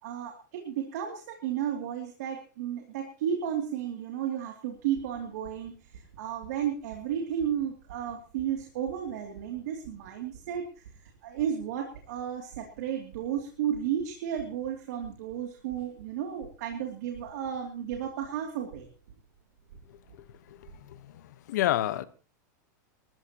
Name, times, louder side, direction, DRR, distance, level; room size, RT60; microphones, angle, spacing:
voice 1, 0.0-10.8 11.2-18.9, right 9 dB, 60° right, 2.8 m, -33 dB
sound 1, 4.7-20.9, right 7 dB, 75° right, 7.7 m, -54 dB
voice 2, 20.5-22.0, left 14 dB, 65° left, 1.2 m, -30 dB
26.5 x 14.0 x 3.0 m
supercardioid pair, 165°, 10 cm